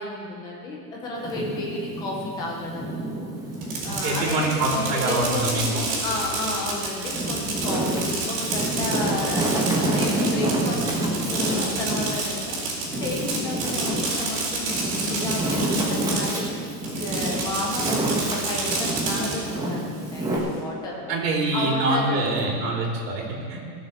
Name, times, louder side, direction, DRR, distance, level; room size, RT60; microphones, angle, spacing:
voice 1, 0.0-3.1 3.8-5.7 6.0-12.6 12.9-21.2 21.5-22.6, left 2 dB, 10° left, -2 dB, 0.4 m, -32 dB
Wind, 1.2-4.0 4.5-5.8 6.4-20.4, right 2 dB, 5° right, 1.1 m, -28 dB
Fireworks, 3.5-16.5 16.8-19.3, right 3 dB, 55° right, 4.3 m, -29 dB
voice 2, 4.0-5.9 21.1-23.7, right 2 dB, 75° right, -1 dB, 3.6 m, -25 dB
17.0 x 7.0 x 6.9 m, 2.3 s
supercardioid pair, 165°, 49 cm